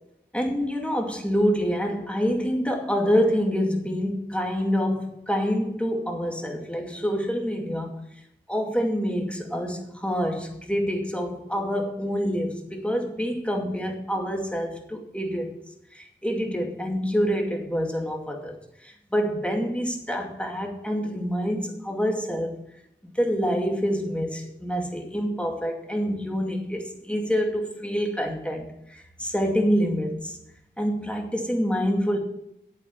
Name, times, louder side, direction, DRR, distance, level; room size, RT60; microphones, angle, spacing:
voice 1, 0.3-8.0 8.5-15.5 15.9-18.6 18.8-22.6 23.0-30.4 30.8-32.2, equal, 5° left, 2 dB, 2.4 m, -26 dB
8.5 x 7.7 x 8.5 m, 0.80 s
wide cardioid pair, 45°, 20 cm